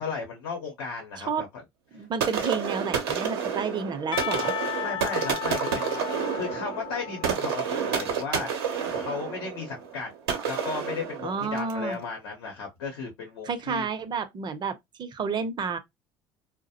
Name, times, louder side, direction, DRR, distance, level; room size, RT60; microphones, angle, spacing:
voice 1, 0.0-1.5 4.8-8.5 8.9-10.1 10.5-13.9, left 5 dB, 90° left, 0.8 m, -35 dB
voice 2, 1.9-4.5 11.2-12.0 13.4-15.8, right 5 dB, 35° right, 0.5 m, -30 dB
sound 1, 2.2-11.8, right 7 dB, 90° right, 0.6 m, -30 dB
Percussion / Church bell, 4.1-8.9, left 12 dB, 40° left, 0.4 m, -36 dB
2.3 x 2.0 x 2.7 m
hypercardioid pair, 75°, 13 cm